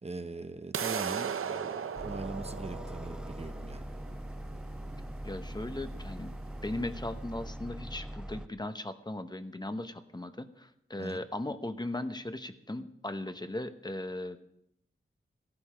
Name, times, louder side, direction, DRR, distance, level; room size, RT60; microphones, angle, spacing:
voice 1, 0.0-3.9 11.0-11.2, right 3 dB, 30° right, 9 dB, 0.9 m, -41 dB
sound 1, 0.7-6.7, right 7 dB, 90° right, 0.6 m, -38 dB
sound 2, 1.9-8.5, equal, 5° right, 0.5 m, -41 dB
voice 2, 5.2-6.3 6.6-14.4, left 1 dB, 20° left, 9 dB, 0.9 m, -38 dB
15.0 x 12.0 x 5.0 m, 0.77 s
wide cardioid pair, 65°, 21 cm